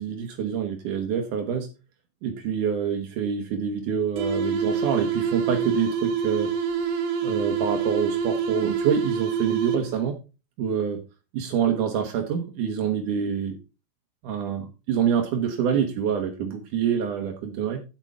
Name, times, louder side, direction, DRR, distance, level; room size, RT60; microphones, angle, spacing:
voice 1, 0.0-1.7 2.2-6.5 7.2-10.2 10.6-11.0 11.3-13.6 14.2-14.6 14.9-17.8, right 7 dB, 80° right, 4 dB, 1.8 m, -26 dB
sound 1, 4.2-10.1, right 6 dB, 65° right, 2.1 m, -26 dB
8.9 x 8.3 x 3.6 m, 0.29 s
omnidirectional pair, 5.5 m